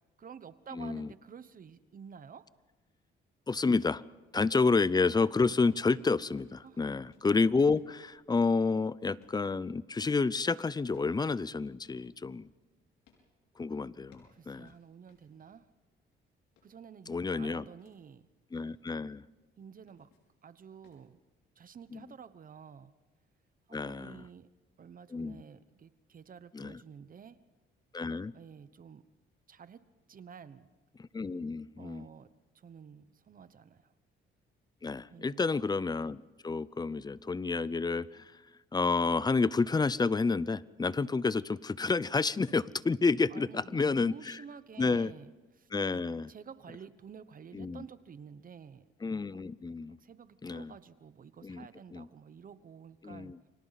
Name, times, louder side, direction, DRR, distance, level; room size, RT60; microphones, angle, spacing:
voice 1, 0.2-2.5 6.6-6.9 14.3-15.7 16.6-18.3 19.6-20.1 20.4-21.2 21.6-22.9 23.7-24.5 24.8-27.4 28.3-29.0 29.5-30.7 31.8-33.9 35.1-35.5 43.3-45.7 46.3-48.9 49.3-49.4 50.0-53.4, right 7 dB, 45° right, 14 dB, 1.0 m, -51 dB
voice 2, 0.7-1.1 3.5-4.0 4.3-12.5 13.6-14.7 17.1-17.7 18.5-19.2 21.9-22.0 23.7-24.2 25.1-25.4 26.5-26.8 27.9-28.3 31.0-32.1 34.8-38.4 38.7-44.4 44.8-45.1 45.7-46.3 47.5-47.8 49.0-50.0 50.4-50.7 51.4-52.1 53.0-53.4, left 4 dB, 20° left, 19 dB, 0.6 m, -30 dB
sound 1, 4.8-10.1 10.8-13.3 13.8-15.7 16.1-17.9 18.4-18.8 19.7-20.4 20.8-21.1, left 5 dB, 90° left, 5.4 m, -67 dB
29.0 x 24.5 x 4.1 m, 1.2 s
cardioid pair, 90°, 20 cm